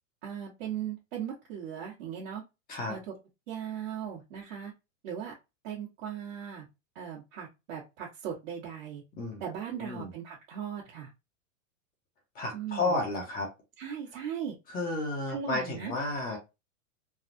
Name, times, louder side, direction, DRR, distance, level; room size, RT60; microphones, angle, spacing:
voice 1, 0.2-2.4 2.9-3.1 3.5-4.7 5.0-5.3 5.6-6.7 6.9-9.0 9.4-11.1 12.5-13.0 13.8-14.6 15.3-15.9, right 8 dB, 60° right, -4 dB, 1.3 m, -38 dB
voice 2, 9.8-10.1 12.3-13.5 14.7-16.4, left 2 dB, 20° left, 0 dB, 0.9 m, -32 dB
3.3 x 2.3 x 2.5 m, 0.25 s
hypercardioid pair, 135°, 39 cm